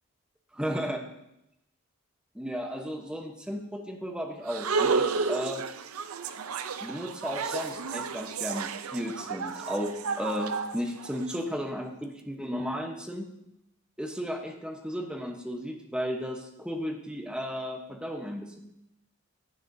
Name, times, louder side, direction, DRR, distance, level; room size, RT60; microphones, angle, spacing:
voice 1, 0.5-1.0 2.3-5.6 6.8-13.3 14.0-18.6, equal, 5° right, 3 dB, 1.0 m, -34 dB
sound 1, 4.5-11.4, right 5 dB, 85° right, 0.6 m, -32 dB
16.5 x 10.0 x 2.7 m, 0.84 s
head